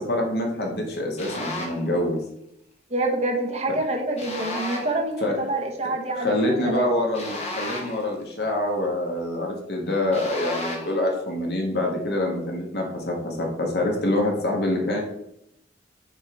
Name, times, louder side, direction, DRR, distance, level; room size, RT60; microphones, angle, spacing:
voice 1, 0.0-2.2 5.2-5.4 6.1-15.0, left 1 dB, 65° left, 0 dB, 1.3 m, -25 dB
sound 1, 1.2-1.9 4.2-5.0 7.1-8.1 10.1-11.0, left 2 dB, 35° left, 1.1 m, -33 dB
voice 2, 2.9-6.9, right 2 dB, 35° right, 2 dB, 1.0 m, -27 dB
6.5 x 3.7 x 4.6 m, 0.76 s
head